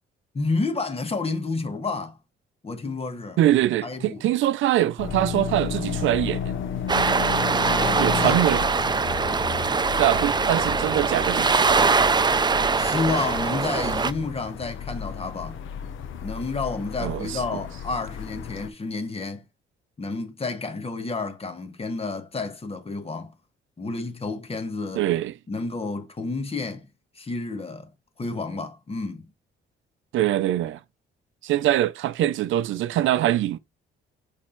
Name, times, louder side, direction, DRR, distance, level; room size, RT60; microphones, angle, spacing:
voice 1, 0.3-2.2 2.6-3.4 3.8-4.2 7.6-8.4 12.7-15.6 16.2-19.4 20.0-23.3 23.8-25.0 25.5-26.9 27.2-27.9 28.2-29.3, left 3 dB, 30° left, 1.5 m, -30 dB
voice 2, 3.4-6.5 8.0-8.6 10.0-11.9 17.0-17.4 24.9-25.3 30.1-30.8 31.4-33.6, right 13 dB, 80° right, 0.5 m, -23 dB
sound 1, 5.0-18.7, left 7 dB, 80° left, 1.0 m, -33 dB
sound 2, 6.9-14.1, right 4 dB, 20° right, 0.5 m, -22 dB
6.4 x 3.6 x 4.4 m
cardioid pair, 90°, 20 cm